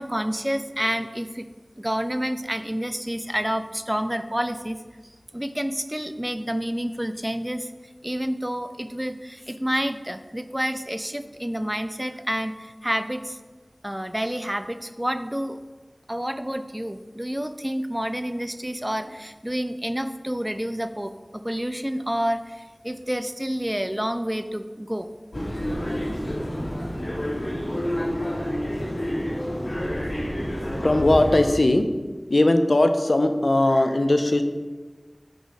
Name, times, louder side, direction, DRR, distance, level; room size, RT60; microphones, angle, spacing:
voice 1, 0.0-1.5 1.8-4.8 5.3-7.7 8.0-13.4 13.8-15.6 16.1-25.1, equal, 15° right, 10 dB, 0.3 m, -29 dB
sound 1, 25.3-31.5, equal, 90° left, 1.5 m, -28 dB
voice 2, 30.7-31.8 32.3-34.4, left 1 dB, 75° left, 7 dB, 0.4 m, -19 dB
5.0 x 4.8 x 4.0 m, 1.3 s
wide cardioid pair, 45°, 0 cm